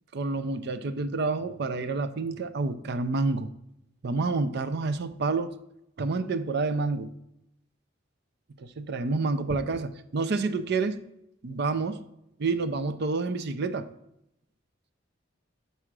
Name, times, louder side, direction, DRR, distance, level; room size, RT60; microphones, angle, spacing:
voice 1, 0.1-3.5 4.0-5.6 6.0-7.1 8.6-11.0 11.4-12.0 12.4-13.9, right 3 dB, 55° right, 11 dB, 0.5 m, -28 dB
5.5 x 4.8 x 6.1 m, 0.82 s
head